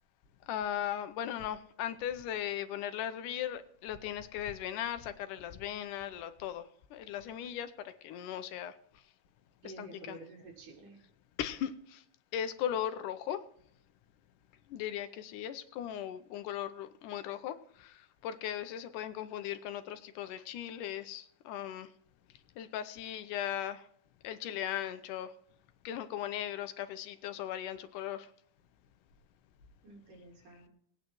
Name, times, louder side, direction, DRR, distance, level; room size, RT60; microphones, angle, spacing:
voice 1, 0.5-8.7 9.8-10.2 11.4-12.0 12.3-13.4 14.7-21.9 22.6-23.9 24.2-25.3 25.8-28.3, left 10 dB, 90° left, 11 dB, 2.3 m, -38 dB
voice 2, 9.6-11.0 29.8-30.7, right 2 dB, 80° right, -1 dB, 4.7 m, -50 dB
20.0 x 9.4 x 3.1 m, 0.66 s
omnidirectional pair, 3.7 m